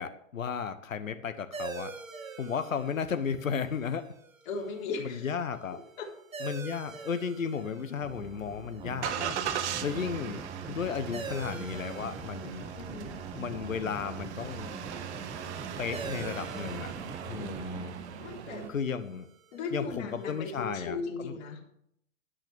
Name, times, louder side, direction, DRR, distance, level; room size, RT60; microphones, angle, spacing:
voice 1, 0.0-1.9 2.4-4.0 5.0-5.8 6.4-9.4 9.8-12.7 13.4-14.7 15.8-16.9 17.3-18.0 18.7-19.3 19.7-21.0 21.2-21.3, left 6 dB, 85° left, 11 dB, 1.0 m, -34 dB
sound 1, 1.5-20.7, right 5 dB, 85° right, 1.8 m, -47 dB
voice 2, 4.5-5.3 6.0-6.1 12.8-13.2 18.2-18.7 19.5-21.6, left 4 dB, 55° left, -3 dB, 3.8 m, -37 dB
Engine starting, 8.0-18.7, right 9 dB, 60° right, 1.6 m, -39 dB
sound 2, 8.8-17.8, right 5 dB, 15° right, 1.4 m, -43 dB
13.0 x 11.0 x 3.5 m, 0.70 s
figure-of-eight pair, 105°, 39 cm